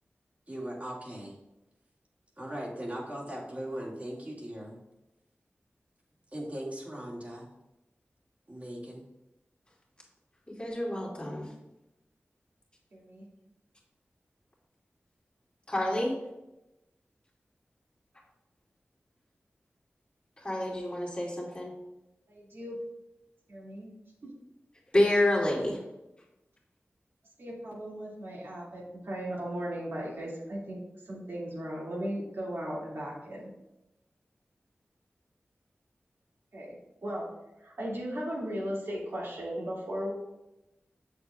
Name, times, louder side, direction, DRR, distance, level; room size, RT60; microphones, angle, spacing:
voice 1, 0.5-1.4 2.4-4.8 6.3-7.5 8.5-9.0, right 1 dB, 35° right, -4 dB, 2.2 m, -39 dB
voice 2, 10.5-11.5 15.7-16.2 20.4-21.7 24.9-25.8, left 1 dB, 25° left, -5 dB, 2.5 m, -28 dB
voice 3, 12.9-13.3 22.3-22.7 23.5-23.9 24.2-24.3 27.4-33.5 36.5-36.8 37.0-37.3 37.6-40.1, equal, 75° right, -6 dB, 2.4 m, -37 dB
7.2 x 6.7 x 2.5 m, 0.94 s
cardioid pair, 45°, 4 cm